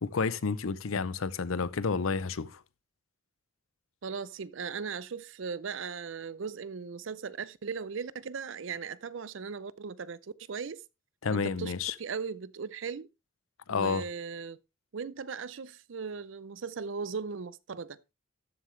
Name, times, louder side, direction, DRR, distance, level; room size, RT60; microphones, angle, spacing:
voice 1, 0.0-2.6 11.2-11.9 13.7-14.0, left 5 dB, 85° left, 0.6 m, -30 dB
voice 2, 4.0-10.8 11.3-13.1 13.7-14.6 14.9-18.0, right 5 dB, 65° right, 0.5 m, -38 dB
13.0 x 7.5 x 3.2 m
head